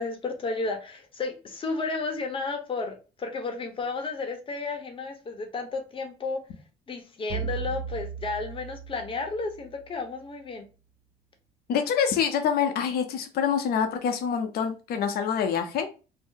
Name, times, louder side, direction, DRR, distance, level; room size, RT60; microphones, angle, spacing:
voice 1, 0.0-6.4 6.9-10.7, left 3 dB, 30° left, 4 dB, 0.8 m, -32 dB
sound 1, 7.3-9.9, right 6 dB, 50° right, 1.3 m, -36 dB
voice 2, 11.7-15.9, left 7 dB, 65° left, 7 dB, 0.6 m, -26 dB
2.6 x 2.0 x 3.6 m, 0.33 s
cardioid pair, 110°, 17 cm